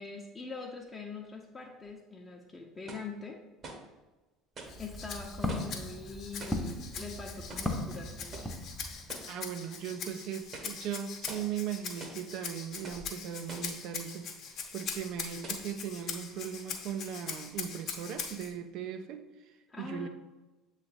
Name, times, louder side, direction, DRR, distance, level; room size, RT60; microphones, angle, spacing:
voice 1, 0.0-3.4 4.8-8.4 9.1-9.2 19.7-20.1, left 4 dB, 25° left, -2 dB, 0.8 m, -43 dB
sound 1, 1.8-1.9 2.9-3.1 3.6-3.9 4.6-4.8 5.5-5.8 6.4-6.7 7.5-7.8 8.3-8.6 9.1-9.4 9.8-9.9 10.4-10.8 11.3-11.5 12.0-12.3 12.8-13.1 13.5-13.8 14.5-14.6 15.4-15.7, right 2 dB, 40° right, 1.0 m, -46 dB
Walk footsteps, 4.6-9.1, left 1 dB, ahead, 0.8 m, -38 dB
Rattle (instrument), 4.7-18.5, left 6 dB, 50° left, 0.9 m, -42 dB
voice 2, 9.2-20.1, right 8 dB, 55° right, 9 dB, 0.5 m, -38 dB
7.5 x 3.3 x 4.1 m, 1.2 s
figure-of-eight pair, 65°, 0 cm